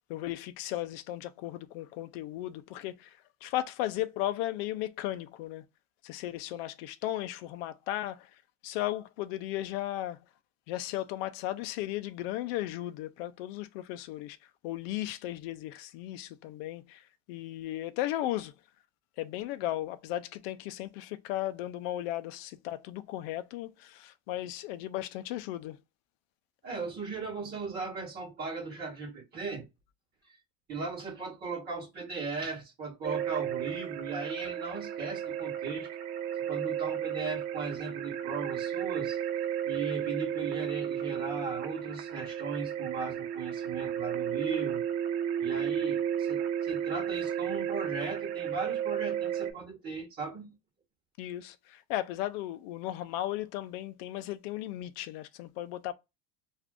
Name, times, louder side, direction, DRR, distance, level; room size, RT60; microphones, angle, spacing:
voice 1, 0.1-5.6 6.0-8.3 8.6-10.2 10.7-14.4 14.6-18.5 19.2-25.8 51.2-55.9, left 14 dB, 70° left, 0.4 m, -36 dB
voice 2, 26.6-29.7 30.2-30.4 30.7-35.9 36.5-39.2 39.7-44.8 45.4-50.5, right 4 dB, 30° right, 1.2 m, -37 dB
sound 1, 33.0-49.5, right 9 dB, 65° right, 0.8 m, -33 dB
2.5 x 2.4 x 3.5 m
cardioid pair, 160°, 31 cm